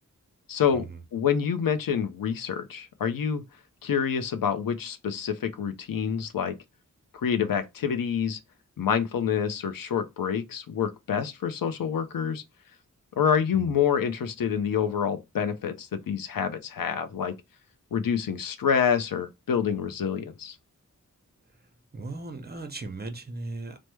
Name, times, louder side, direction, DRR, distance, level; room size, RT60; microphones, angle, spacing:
voice 1, 0.5-0.9 1.1-3.4 3.8-6.5 7.1-8.4 8.8-12.4 13.2-17.3 17.9-20.6, left 7 dB, 85° left, 0.5 m, -27 dB
voice 2, 21.9-23.8, right 3 dB, 30° right, 0.6 m, -37 dB
3.3 x 2.0 x 3.0 m
wide cardioid pair, 80°, 33 cm